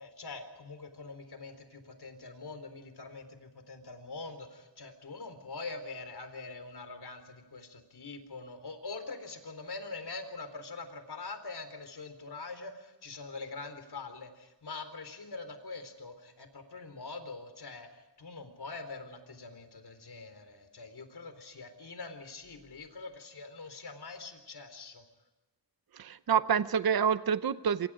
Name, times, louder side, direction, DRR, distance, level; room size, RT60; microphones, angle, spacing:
voice 1, 0.0-25.0, left 3 dB, 60° left, 9 dB, 4.1 m, -44 dB
voice 2, 25.9-27.9, right 7 dB, 55° right, 13 dB, 0.8 m, -27 dB
27.0 x 25.5 x 5.0 m, 1.1 s
wide cardioid pair, 125°, 43 cm